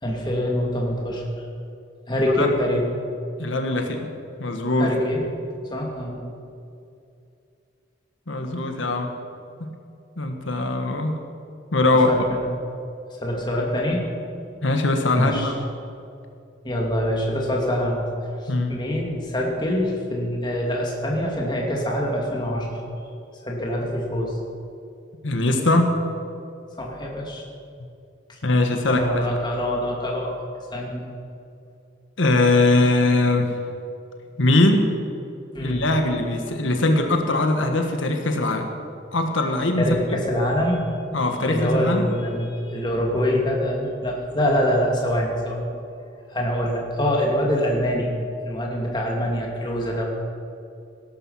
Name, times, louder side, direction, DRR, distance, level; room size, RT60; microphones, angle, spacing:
voice 1, 0.0-1.2 2.1-2.8 4.8-5.2 5.7-6.2 12.1-12.5 13.2-14.0 15.1-15.5 16.6-18.1 18.7-22.7 23.4-24.3 26.8-27.4 28.3-28.4 28.9-30.4 30.7-31.0 35.5-35.8 39.8-41.0 41.4-45.7 46.3-48.1 48.4-50.0, equal, 25° left, -2 dB, 2.6 m, -24 dB
voice 2, 3.4-4.1 4.4-5.0 8.3-9.1 10.2-11.1 11.7-12.1 14.6-15.5 18.5-18.7 25.2-25.9 28.4-29.3 32.2-33.5 34.4-34.9 35.6-38.7 39.1-40.2 41.1-42.1, left 2 dB, 90° left, 4 dB, 1.4 m, -21 dB
17.5 x 12.0 x 5.7 m, 2.5 s
head